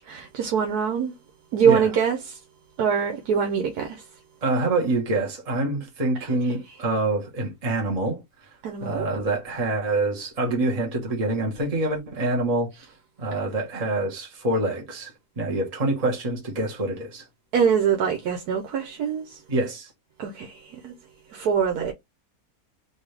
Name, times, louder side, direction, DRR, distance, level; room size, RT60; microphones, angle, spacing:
voice 1, 0.1-1.1 1.5-2.4 2.8-4.0 6.2-6.5 8.6-9.1 17.5-19.4 20.2-20.9 21.3-21.9, right 7 dB, 85° right, 1.3 m, -24 dB
voice 2, 4.4-8.2 8.8-12.7 13.2-17.2 19.5-19.9, right 2 dB, 25° right, 1.3 m, -26 dB
4.1 x 2.7 x 3.3 m
omnidirectional pair, 1.6 m